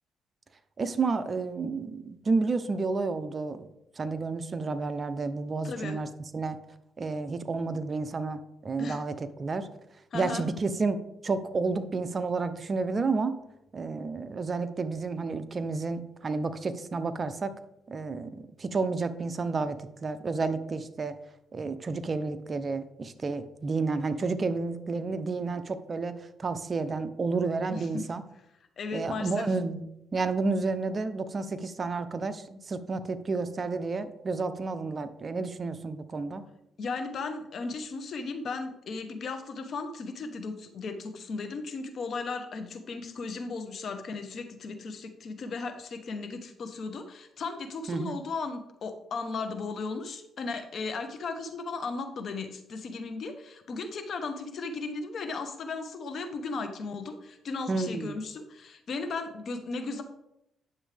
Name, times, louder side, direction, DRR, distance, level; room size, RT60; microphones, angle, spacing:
voice 1, 0.8-3.7 4.0-6.6 7.0-9.7 10.1-13.3 13.7-17.5 17.9-21.2 21.5-28.2 28.9-29.8 30.1-36.4 47.9-48.2 57.7-58.2, right 4 dB, 35° right, 11 dB, 0.7 m, -31 dB
voice 2, 5.6-6.0 8.8-9.0 10.1-10.4 27.7-28.1 28.8-29.5 36.8-60.0, left 4 dB, 55° left, 7 dB, 1.1 m, -36 dB
9.7 x 7.1 x 3.4 m, 0.84 s
cardioid pair, 90°, 0 cm